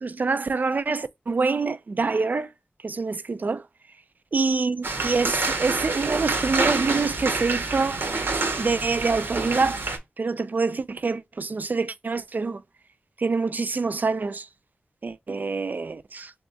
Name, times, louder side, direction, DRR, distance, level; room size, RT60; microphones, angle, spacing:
voice 1, 0.0-2.5 2.8-3.6 4.3-8.0 8.6-9.8 10.2-12.6 13.2-14.5 15.0-16.3, right 4 dB, 50° right, 0.3 m, -26 dB
sound 1, 4.8-10.0, right 3 dB, 80° right, 0.8 m, -27 dB
3.5 x 2.3 x 3.8 m
wide cardioid pair, 65°, 4 cm